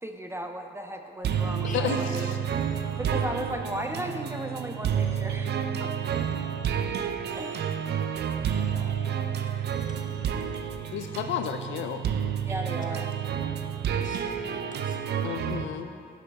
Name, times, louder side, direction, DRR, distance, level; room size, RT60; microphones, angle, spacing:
voice 1, 0.0-5.9 7.3-8.0 8.3-9.2 12.4-13.1 15.5-16.0, right 1 dB, 10° right, 4 dB, 0.5 m, -37 dB
sound 1, 1.2-15.6, right 8 dB, 55° right, 0.5 m, -30 dB
sound 2, 1.3-11.1, right 1 dB, 35° right, 1.8 m, -49 dB
voice 2, 1.7-2.4 10.9-12.1 15.2-15.9, left 10 dB, 75° left, 8 dB, 0.4 m, -32 dB
voice 3, 9.9-10.9 14.0-15.0, left 4 dB, 40° left, 1 dB, 1.2 m, -48 dB
11.5 x 6.5 x 3.5 m, 2.4 s
cardioid pair, 90°, 20 cm